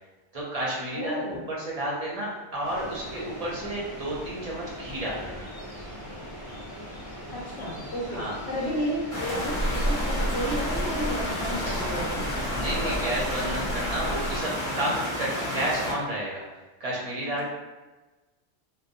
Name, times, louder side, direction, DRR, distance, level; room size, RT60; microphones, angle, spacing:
voice 1, 0.3-1.2 1.5-5.5 8.1-8.3 11.6-11.8 12.5-16.4 16.8-17.5, right 1 dB, 45° right, -5 dB, 0.6 m, -31 dB
voice 2, 0.9-1.5 7.3-8.2 8.5-12.3 17.2-17.5, equal, 90° left, -4 dB, 1.0 m, -32 dB
sound 1, 2.6-13.2, equal, 25° left, 0.6 m, -40 dB
sound 2, 9.1-15.9, left 1 dB, 5° left, 1.2 m, -31 dB
sound 3, 9.4-14.5, equal, 60° left, 0.9 m, -32 dB
2.5 x 2.2 x 2.5 m, 1.2 s
omnidirectional pair, 1.1 m